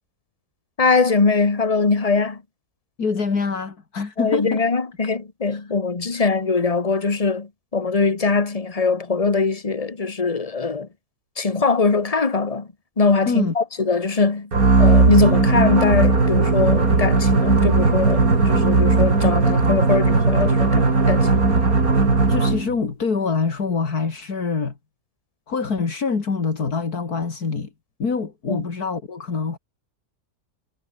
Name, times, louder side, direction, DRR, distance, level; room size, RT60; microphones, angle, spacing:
voice 1, 0.8-2.4 4.2-10.9 11.4-12.7 13.0-14.5 14.8-21.5 28.5-28.6, left 4 dB, 25° left, 1.6 m, -21 dB
voice 2, 3.0-4.7 5.5-5.7 6.1-6.2 13.3-13.5 22.3-24.8 25.5-27.7 28.0-29.6, left 5 dB, 75° left, 3.1 m, -25 dB
sound 1, 14.5-22.8, right 3 dB, 65° right, 3.9 m, -17 dB
omnidirectional pair, 1.6 m